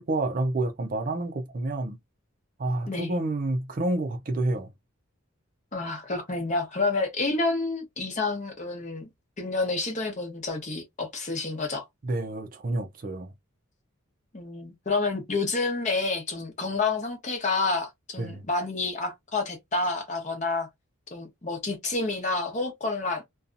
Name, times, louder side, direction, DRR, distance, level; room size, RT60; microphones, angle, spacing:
voice 1, 0.0-2.0 2.6-4.7 12.0-13.3 18.2-18.4, right 2 dB, 40° right, 0.4 m, -29 dB
voice 2, 5.7-9.1 9.4-11.8 14.3-20.7 21.1-23.2, left 3 dB, 35° left, 0.8 m, -29 dB
2.6 x 2.3 x 2.4 m
head